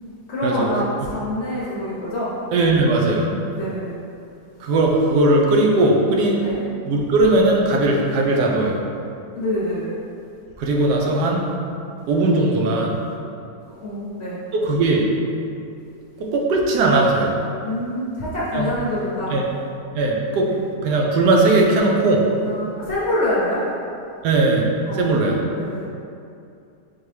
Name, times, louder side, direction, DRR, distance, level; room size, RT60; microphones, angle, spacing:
voice 1, 0.3-2.3 3.2-3.9 6.3-6.6 9.3-9.9 13.6-14.4 17.6-19.4 20.5-20.6 22.4-23.6 24.9-25.2 25.5-25.8, left 1 dB, 55° left, -8 dB, 0.8 m, -26 dB
voice 2, 2.5-3.3 4.6-6.4 6.9-8.8 10.6-11.5 12.1-13.0 14.6-15.1 16.2-17.4 18.5-18.7 19.3-19.4 19.9-20.5 20.8-22.3 24.2-24.7 24.9-25.4, right 2 dB, 85° right, -1 dB, 1.2 m, -18 dB
4.3 x 2.9 x 3.2 m, 2.5 s
omnidirectional pair, 1.7 m